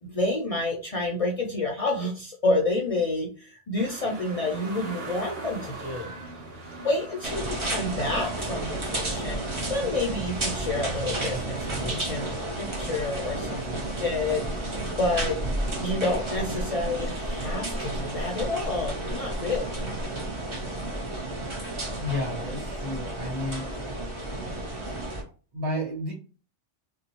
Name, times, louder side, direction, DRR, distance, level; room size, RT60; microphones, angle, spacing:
voice 1, 0.0-6.1 6.8-15.4 15.8-19.9, left 2 dB, 50° left, -1 dB, 0.4 m, -29 dB
sound 1, 3.8-12.6 13.0-13.1, right 2 dB, 60° right, 1.0 m, -43 dB
sound 2, 7.2-25.2, right 1 dB, 30° right, 0.6 m, -32 dB
voice 2, 22.0-23.7 25.5-26.1, left 1 dB, 85° right, -4 dB, 1.5 m, -31 dB
2.7 x 2.1 x 2.8 m, 0.36 s
omnidirectional pair, 1.2 m